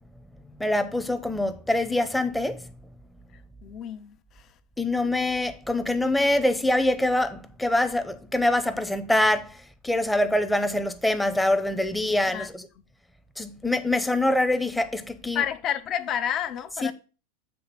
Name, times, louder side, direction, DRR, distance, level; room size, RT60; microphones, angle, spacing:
voice 1, 0.6-2.7 4.8-12.7 13.4-15.4 16.8-16.9, left 1 dB, 5° left, 0.8 m, -24 dB
voice 2, 3.6-4.5 12.3-12.5 15.3-16.9, left 9 dB, 40° left, 0.6 m, -30 dB
7.7 x 3.3 x 5.7 m
hypercardioid pair, 100°, 0 cm